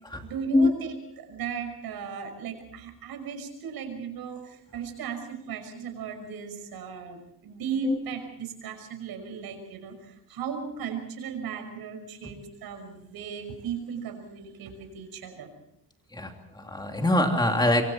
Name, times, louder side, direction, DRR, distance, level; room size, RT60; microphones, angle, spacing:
voice 1, 0.2-15.5, right 6 dB, 75° right, 5 dB, 5.9 m, -36 dB
voice 2, 16.1-17.8, left 1 dB, 10° left, 3 dB, 3.0 m, -24 dB
25.5 x 24.5 x 4.5 m, 0.76 s
cardioid pair, 175°, 37 cm